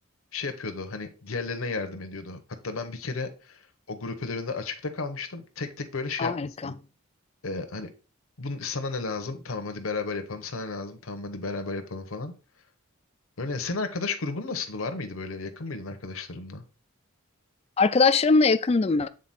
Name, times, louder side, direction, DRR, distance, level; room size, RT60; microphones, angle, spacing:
voice 1, 0.3-6.3 6.6-6.7 7.4-7.9 8.4-12.3 13.4-16.6, left 3 dB, 75° left, 0.9 m, -33 dB
voice 2, 6.2-6.7 17.8-19.1, left 4 dB, 30° left, 0.3 m, -21 dB
7.7 x 4.1 x 4.2 m
head